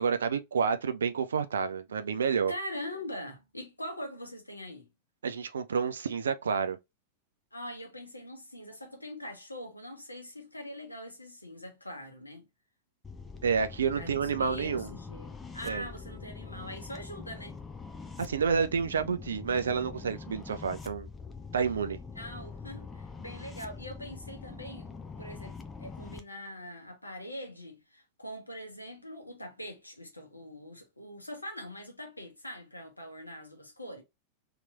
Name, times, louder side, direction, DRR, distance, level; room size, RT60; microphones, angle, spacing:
voice 1, 0.0-2.5 5.2-6.8 13.4-14.9 15.6-15.9 18.2-21.1 21.5-22.0, right 6 dB, 70° right, 0.4 m, -29 dB
voice 2, 2.5-4.9 7.5-12.5 14.0-14.1 14.4-17.6 22.2-24.9 25.2-34.0, equal, 85° left, 1.0 m, -42 dB
sound 1, 13.0-26.2, left 4 dB, 15° left, 0.6 m, -44 dB
3.0 x 2.9 x 2.4 m
figure-of-eight pair, 90°, 0 cm